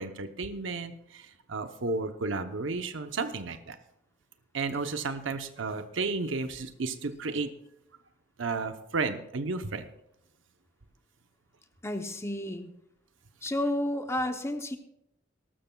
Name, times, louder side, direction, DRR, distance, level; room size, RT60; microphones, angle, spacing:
voice 1, 0.0-3.8 4.5-7.5 8.4-9.8, right 3 dB, 80° right, 8 dB, 0.8 m, -33 dB
voice 2, 11.8-12.7 13.4-14.8, left 1 dB, 15° left, 7 dB, 0.8 m, -31 dB
19.0 x 12.5 x 2.3 m, 0.80 s
head